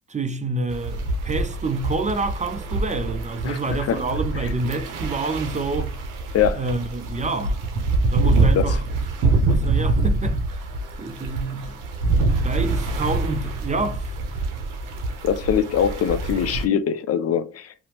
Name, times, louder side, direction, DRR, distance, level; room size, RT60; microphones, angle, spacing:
voice 1, 0.1-6.0 6.6-7.6 8.1-9.0 9.5-10.7 11.0-11.8 12.4-14.1, right 3 dB, 25° right, 0.4 m, -28 dB
sound 1, 0.7-16.7, right 3 dB, 80° right, 0.6 m, -25 dB
voice 2, 6.3-6.6 8.5-8.8 15.2-17.7, left 8 dB, 50° left, 0.4 m, -22 dB
2.8 x 2.0 x 2.8 m
supercardioid pair, 50°, 31 cm